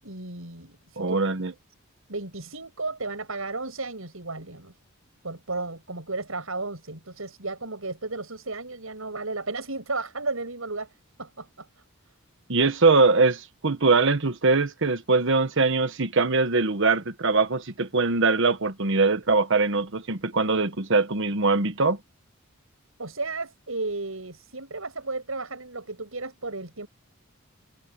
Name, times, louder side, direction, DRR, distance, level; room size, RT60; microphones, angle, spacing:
voice 1, 0.0-1.3 2.1-4.7 5.2-10.9 11.2-11.7 23.0-26.9, right 3 dB, 85° right, 7.3 m, -34 dB
voice 2, 1.0-1.5 12.5-22.0, right 3 dB, 65° right, 1.3 m, -22 dB
head